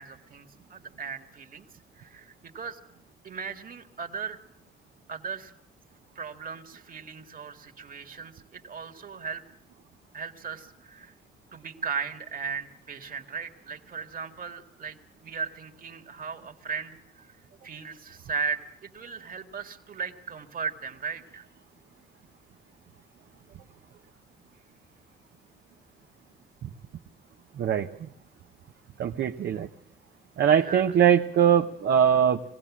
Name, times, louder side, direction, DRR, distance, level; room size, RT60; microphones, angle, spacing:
voice 1, 0.0-1.7 2.0-2.8 3.2-4.4 5.1-5.5 6.2-9.4 10.1-11.1 11.5-17.3 17.6-21.5 30.6-30.9, right 6 dB, 45° right, 5 dB, 1.9 m, -37 dB
voice 2, 27.5-28.1 29.0-29.7 30.4-32.4, right 8 dB, 60° right, 4 dB, 0.8 m, -22 dB
21.5 x 16.5 x 7.3 m, 0.74 s
cardioid pair, 90°, 20 cm